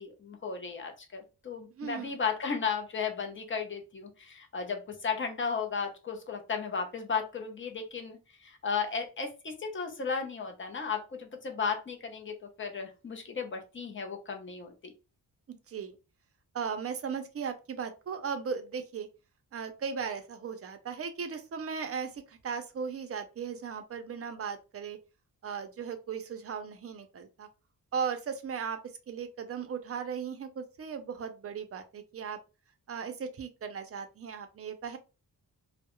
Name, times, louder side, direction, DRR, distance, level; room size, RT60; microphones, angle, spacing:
voice 1, 0.0-14.9, left 5 dB, 35° left, 4 dB, 0.5 m, -35 dB
voice 2, 1.8-2.1 15.5-16.0 16.5-19.1 19.5-25.0 25.4-27.5 27.9-28.8 29.1-32.4 32.9-35.0, right 6 dB, 40° right, 8 dB, 0.4 m, -37 dB
2.2 x 2.0 x 2.9 m, 0.30 s
wide cardioid pair, 135°, 37 cm